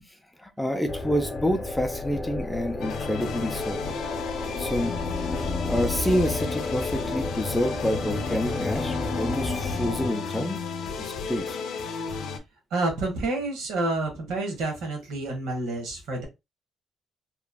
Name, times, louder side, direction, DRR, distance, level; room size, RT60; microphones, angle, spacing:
voice 1, 0.4-3.9 4.6-5.0 5.7-10.6 11.0-11.6, equal, 5° left, 0.5 m, -28 dB
sound 1, 0.9-10.1, left 3 dB, 40° left, 0.9 m, -32 dB
sound 2, 2.8-12.4, left 5 dB, 80° left, 0.6 m, -33 dB
voice 2, 12.7-16.3, right 2 dB, 90° right, 1.1 m, -29 dB
3.0 x 2.5 x 2.3 m
cardioid pair, 90°, 0 cm